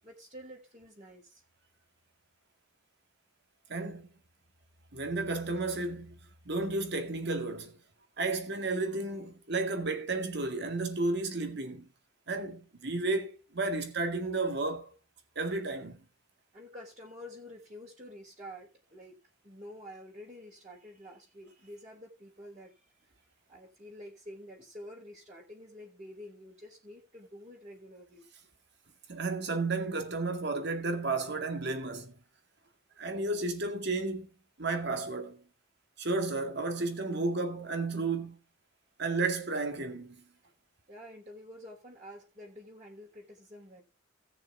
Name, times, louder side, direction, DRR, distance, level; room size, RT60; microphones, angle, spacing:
voice 1, 0.0-1.4 16.5-22.9 23.5-28.3 40.9-43.8, equal, 35° right, 3.5 m, -49 dB
voice 2, 3.7-4.1 4.9-6.2 6.5-7.8 8.2-11.9 12.3-14.9 15.4-16.0 29.1-32.1 33.0-34.3 34.6-35.4 36.0-38.4 39.0-40.2, right 3 dB, 55° right, 2.2 m, -32 dB
18.0 x 6.6 x 3.5 m
head